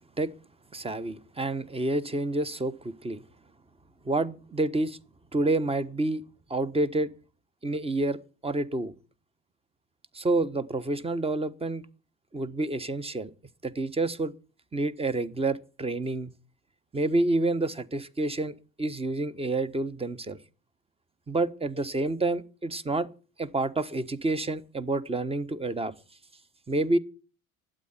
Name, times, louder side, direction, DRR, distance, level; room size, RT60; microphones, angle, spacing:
voice 1, 0.7-3.2 4.0-5.0 5.3-6.2 6.5-7.1 7.6-8.9 10.1-11.8 12.3-13.3 13.6-14.3 14.7-16.3 16.9-20.4 21.3-23.1 23.4-25.9 26.7-27.0, right 2 dB, 15° right, 1.2 m, -28 dB
12.0 x 9.1 x 9.7 m
hypercardioid pair, 70°, 39 cm